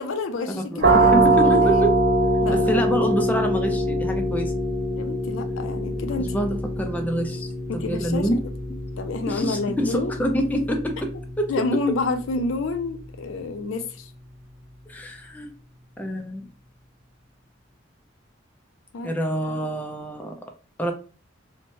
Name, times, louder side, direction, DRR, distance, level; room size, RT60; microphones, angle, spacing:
voice 1, 0.0-1.8 2.4-2.8 5.0-6.5 7.7-8.4 9.0-10.2 11.5-14.1 18.9-19.1, left 3 dB, 80° left, 8 dB, 0.4 m, -29 dB
voice 2, 0.7-1.9 2.5-4.5 6.2-8.4 9.3-11.1 11.4-11.5 14.9-15.5 16.0-16.5 19.0-20.4 20.8-20.9, equal, 10° left, 4 dB, 0.3 m, -26 dB
sound 1, 0.8-12.3, right 1 dB, 55° right, 0.5 m, -23 dB
3.0 x 2.1 x 2.6 m, 0.37 s
head